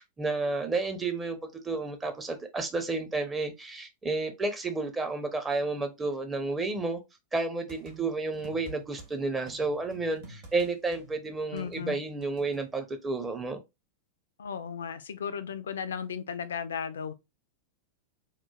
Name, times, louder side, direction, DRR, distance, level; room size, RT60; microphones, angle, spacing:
voice 1, 0.0-1.4 1.6-7.0 7.3-13.6, right 3 dB, 15° right, 0.5 m, -31 dB
sound 1, 7.7-9.1 9.5-12.6, right 3 dB, 50° right, 1.1 m, -49 dB
voice 2, 11.5-12.0 14.4-17.1, left 7 dB, 65° left, 0.3 m, -35 dB
3.0 x 2.1 x 2.3 m
figure-of-eight pair, 90°, 0 cm